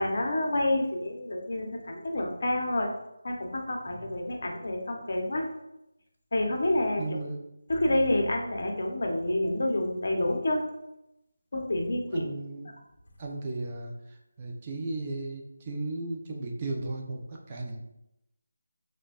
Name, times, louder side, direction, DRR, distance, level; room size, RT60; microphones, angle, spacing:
voice 1, 0.0-2.9 3.2-5.4 6.3-7.0 7.7-10.6 11.5-12.3, left 1 dB, 60° left, 1 dB, 0.6 m, -28 dB
voice 2, 7.0-7.4 12.0-12.7 13.2-17.8, right 2 dB, 30° right, 0 dB, 0.4 m, -36 dB
3.2 x 2.1 x 2.4 m, 0.86 s
figure-of-eight pair, 165°, 0 cm